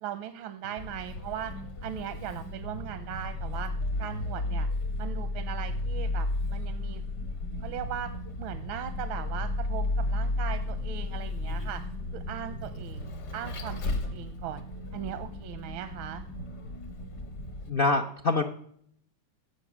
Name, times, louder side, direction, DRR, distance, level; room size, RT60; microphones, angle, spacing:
voice 1, 0.0-1.5 1.8-3.7 4.0-4.7 5.0-7.0 7.6-8.1 8.4-11.8 12.1-14.6 14.9-16.2, right 10 dB, 90° right, 10 dB, 1.5 m, -38 dB
Vehicle, 0.8-17.7, left 2 dB, 55° left, 1.8 m, -33 dB
voice 2, 17.7-18.4, left 3 dB, 70° left, 4 dB, 0.5 m, -25 dB
14.0 x 5.5 x 8.4 m, 0.66 s
omnidirectional pair, 2.2 m